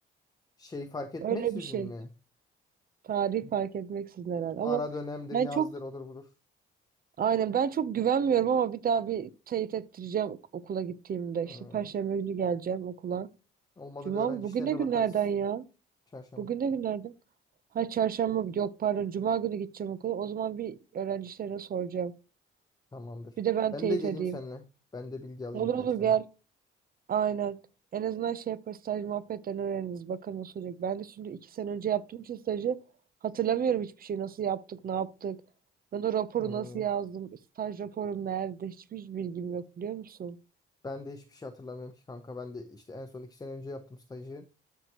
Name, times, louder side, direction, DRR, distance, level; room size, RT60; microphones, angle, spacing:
voice 1, 0.6-2.1 3.4-3.5 4.6-6.3 11.4-11.9 13.8-15.1 16.1-16.6 22.9-23.4 23.7-24.7 24.9-26.1 36.4-36.8 40.8-44.5, left 2 dB, 20° left, 0.9 m, -40 dB
voice 2, 1.2-1.9 3.0-4.8 5.3-5.7 7.2-13.3 14.1-15.6 16.4-17.1 17.7-22.1 23.4-24.4 25.5-26.3 27.1-27.6 27.9-32.8 33.2-35.4 35.9-40.4, right 8 dB, 45° right, 0.8 m, -30 dB
13.0 x 4.7 x 3.0 m
cardioid pair, 110°, 21 cm